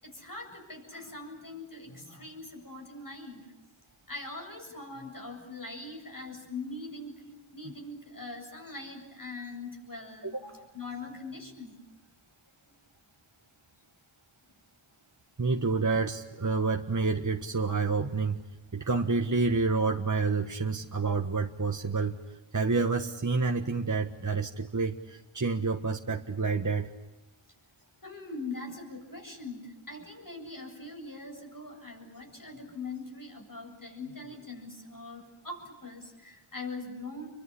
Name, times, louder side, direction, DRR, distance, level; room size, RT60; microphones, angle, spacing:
voice 1, 0.0-3.5 4.1-7.2 7.5-11.8 12.7-12.8 28.0-37.3, left 3 dB, 40° left, 3 dB, 7.8 m, -42 dB
voice 2, 15.4-18.4 18.7-22.1 22.5-26.9, right 4 dB, 35° right, 3 dB, 1.5 m, -28 dB
29.5 x 23.5 x 8.6 m, 1.0 s
wide cardioid pair, 45°, 50 cm